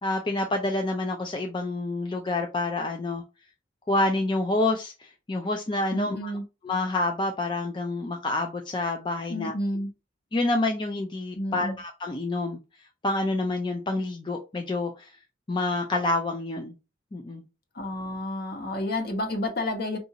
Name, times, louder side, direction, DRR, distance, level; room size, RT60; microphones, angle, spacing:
voice 1, 0.0-3.2 3.9-6.3 6.6-9.5 10.3-12.6 13.0-15.1 15.5-16.8 17.1-17.4, left 2 dB, 25° left, 0.4 m, -28 dB
voice 2, 5.9-6.4 9.3-9.9 11.3-11.7 17.7-20.0, left 1 dB, 50° left, 1.1 m, -30 dB
4.7 x 2.7 x 2.7 m
head